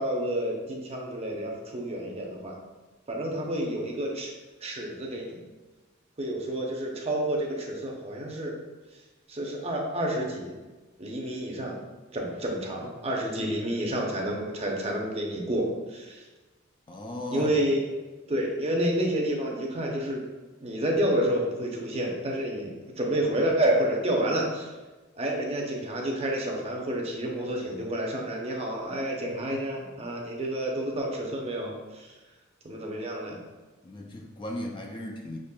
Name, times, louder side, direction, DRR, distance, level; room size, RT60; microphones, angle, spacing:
voice 1, 0.0-2.6 3.1-4.3 4.6-5.4 6.2-8.5 9.3-10.5 11.0-11.8 12.1-16.2 17.3-17.8 18.3-20.2 20.6-24.7 25.2-32.1 32.6-33.4, right 1 dB, 30° right, -1 dB, 0.7 m, -29 dB
voice 2, 16.9-17.7 33.8-35.4, left 1 dB, 25° left, 1 dB, 0.4 m, -36 dB
6.4 x 3.1 x 2.2 m, 1.2 s
head